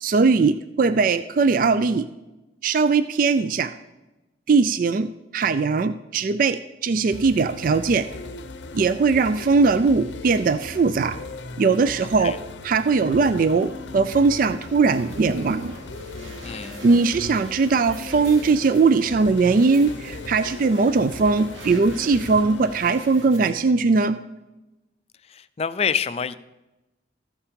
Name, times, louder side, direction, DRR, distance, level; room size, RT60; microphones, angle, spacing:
voice 1, 0.0-2.0 2.6-3.7 4.5-8.1 8.7-11.2 11.6-12.3 12.6-15.7 16.8-24.2, right 4 dB, 45° right, 12 dB, 0.3 m, -20 dB
sound 1, 7.1-23.1, left 3 dB, 70° left, 0.7 m, -38 dB
voice 2, 12.0-12.4 16.4-16.8 25.3-26.3, left 6 dB, 30° left, 14 dB, 0.4 m, -27 dB
sound 2, 14.8-23.5, equal, 80° right, 2.7 m, -43 dB
14.0 x 7.2 x 5.2 m, 1.0 s
head